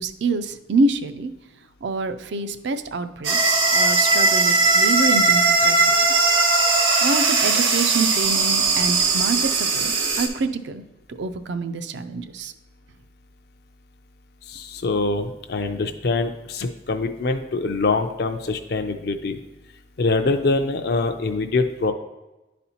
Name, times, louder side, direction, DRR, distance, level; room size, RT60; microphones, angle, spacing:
voice 1, 0.0-1.3 1.8-6.7 7.0-10.8 11.1-12.5, right 3 dB, 65° right, 11 dB, 0.4 m, -27 dB
sound 1, 3.2-10.3, right 3 dB, 80° right, 0.9 m, -19 dB
voice 2, 14.5-19.4 20.0-21.9, left 3 dB, 55° left, 6 dB, 0.4 m, -24 dB
10.5 x 4.2 x 2.8 m, 1.0 s
head